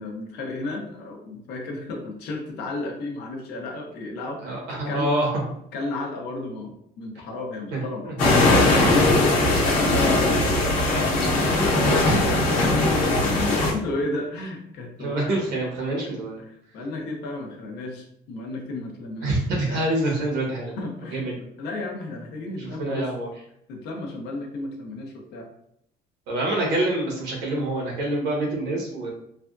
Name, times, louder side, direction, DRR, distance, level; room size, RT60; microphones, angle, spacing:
voice 1, 0.0-5.1 5.7-12.2 12.6-12.9 13.2-15.5 15.8-19.9 20.8-23.1 23.7-25.5, left 2 dB, 70° left, 1 dB, 0.8 m, -33 dB
voice 2, 4.4-5.3 7.7-8.1 12.0-12.2 15.0-16.4 19.2-20.8 21.1-21.4 22.6-23.3 26.3-29.1, right 1 dB, 80° right, -1 dB, 1.2 m, -26 dB
sound 1, 8.2-13.7, left 2 dB, 50° left, 1.0 m, -20 dB
3.4 x 2.2 x 2.5 m, 0.73 s
cardioid pair, 165°, 17 cm